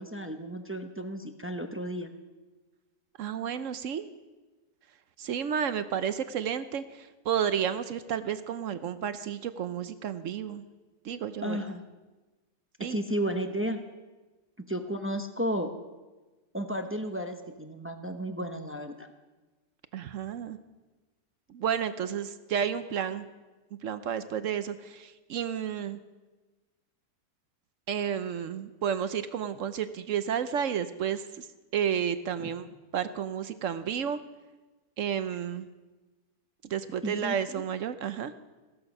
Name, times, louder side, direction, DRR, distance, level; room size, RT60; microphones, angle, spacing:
voice 1, 0.0-2.1 11.4-11.8 12.8-13.8 14.7-15.7 16.5-19.1 37.0-37.6, equal, 15° right, 6 dB, 0.5 m, -33 dB
voice 2, 3.2-4.1 5.2-10.6 11.0-11.6 12.8-13.0 19.9-20.6 21.5-23.2 23.8-26.0 27.9-31.5 31.7-32.7 32.9-34.2 35.0-35.7 36.7-38.3, right 8 dB, 65° right, 12 dB, 0.9 m, -31 dB
16.0 x 13.0 x 5.4 m, 1.2 s
omnidirectional pair, 1.7 m